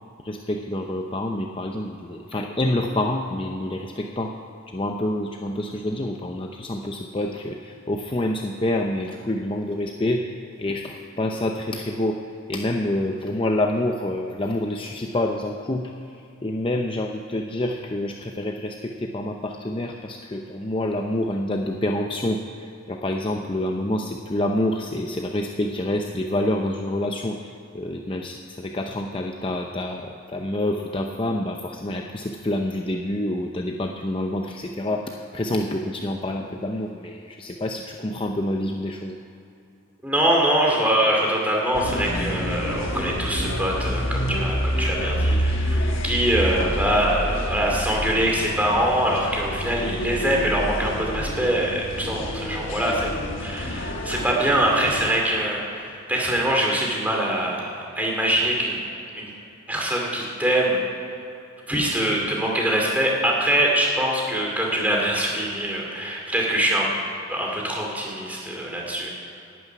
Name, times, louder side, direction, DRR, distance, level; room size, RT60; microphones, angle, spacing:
voice 1, 0.2-4.4 4.7-12.2 12.5-15.9 16.4-39.2, left 1 dB, 25° left, 2 dB, 0.6 m, -27 dB
voice 2, 40.0-53.1 53.4-58.8 59.1-59.3 59.7-60.8 61.7-66.9 67.3-69.1, right 1 dB, 5° right, -1 dB, 2.5 m, -23 dB
sound 1, 41.7-55.1, equal, 60° left, 1.3 m, -28 dB
11.5 x 9.4 x 9.2 m, 2.8 s
head